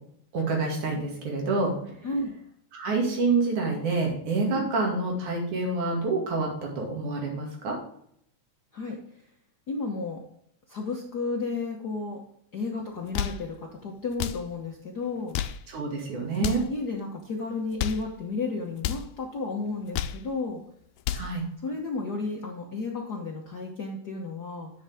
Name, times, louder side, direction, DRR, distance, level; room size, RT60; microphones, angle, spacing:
voice 1, 0.3-1.7 2.7-7.8 15.7-16.6 21.1-21.4, right 3 dB, 85° right, 0 dB, 3.8 m, -27 dB
voice 2, 4.5-5.0 8.7-9.0 9.7-10.2 10.7-12.2 12.5-15.4 16.4-20.6 21.6-24.7, left 3 dB, 60° left, 0 dB, 1.0 m, -32 dB
sound 1, 12.9-13.5 14.1-14.5 15.2-15.7 16.3-16.7 17.6-18.1 18.8-19.1 19.7-20.3 20.8-21.3, left 10 dB, 80° left, 1.9 m, -31 dB
10.5 x 7.2 x 3.6 m, 0.69 s
omnidirectional pair, 3.3 m